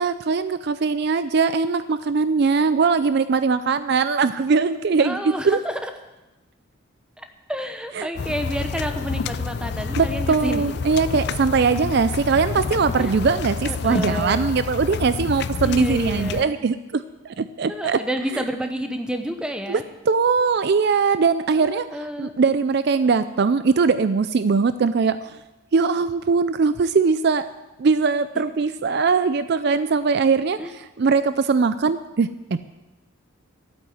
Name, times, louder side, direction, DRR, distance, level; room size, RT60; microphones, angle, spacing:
voice 1, 0.0-5.6 7.9-8.1 10.0-18.0 18.3-18.4 19.7-19.8 20.1-21.9 22.2-25.4 25.7-27.5 27.8-32.6, right 5 dB, 50° right, 13 dB, 0.4 m, -21 dB
voice 2, 5.0-5.9 7.2-10.6 13.0-13.1 13.6-14.5 15.6-16.6 17.7-19.8 21.5-22.3 30.6-30.7, equal, 5° right, 6 dB, 0.9 m, -30 dB
sound 1, 8.2-16.4, left 5 dB, 50° left, 0.4 m, -28 dB
12.5 x 8.8 x 7.9 m, 1.1 s
head